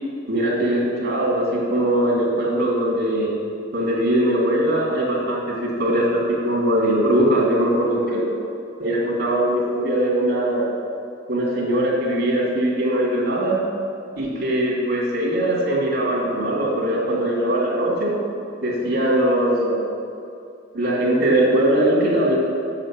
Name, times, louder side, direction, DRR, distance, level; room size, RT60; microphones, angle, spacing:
voice 1, 0.3-3.3 3.7-8.3 8.8-10.7 11.3-13.6 14.2-18.1 18.6-19.8 20.7-22.4, right 1 dB, 55° right, -3 dB, 2.7 m, -21 dB
8.8 x 6.0 x 7.4 m, 2.5 s
head